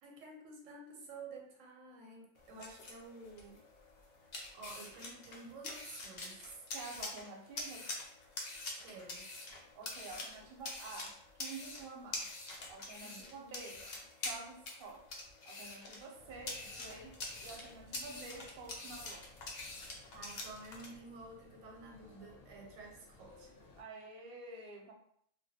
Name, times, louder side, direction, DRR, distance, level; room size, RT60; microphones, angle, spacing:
voice 1, 0.0-3.6 4.5-6.7 8.8-9.3 13.0-13.3 20.1-23.5, right 3 dB, 85° right, 0 dB, 1.0 m, -51 dB
sound 1, 2.3-20.9, left 2 dB, 90° left, 0.3 m, -46 dB
voice 2, 6.7-7.9 9.7-12.3 12.7-13.9 14.2-15.1 15.5-19.3 23.8-24.9, right 3 dB, 60° right, 0 dB, 0.6 m, -49 dB
sound 2, 16.2-23.8, left 3 dB, 60° left, 0.7 m, -60 dB
2.2 x 2.1 x 2.6 m, 0.67 s
omnidirectional pair, 1.3 m